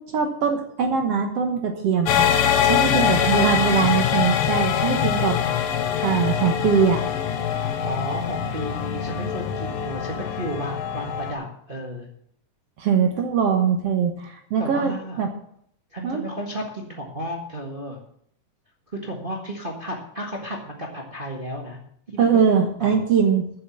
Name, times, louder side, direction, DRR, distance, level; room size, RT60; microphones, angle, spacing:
voice 1, 0.1-2.3 2.6-5.4 6.0-7.1 12.8-14.9 15.2-15.3 16.0-16.2 22.2-23.5, right 6 dB, 60° right, 4 dB, 1.8 m, -21 dB
sound 1, 2.1-11.3, left 8 dB, 65° left, 1.8 m, -23 dB
voice 2, 2.4-3.1 7.6-12.1 14.6-15.2 15.9-18.0 18.9-21.8 22.1-23.0, equal, 35° right, 0 dB, 0.8 m, -33 dB
9.2 x 7.6 x 8.3 m, 0.66 s
omnidirectional pair, 4.0 m